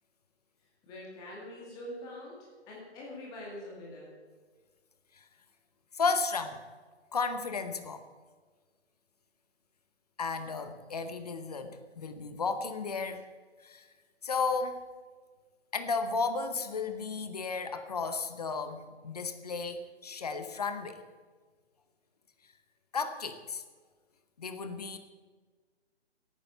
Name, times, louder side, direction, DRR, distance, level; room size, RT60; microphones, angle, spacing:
voice 1, 0.6-4.1, left 1 dB, 10° left, -4 dB, 2.0 m, -44 dB
voice 2, 5.9-6.6 7.1-8.0 10.2-13.3 13.6-13.9 14.2-14.8 15.7-21.0 22.9-23.6 24.4-25.0, left 4 dB, 35° left, 9 dB, 1.0 m, -33 dB
16.5 x 9.3 x 5.6 m, 1.4 s
figure-of-eight pair, 140°, 35 cm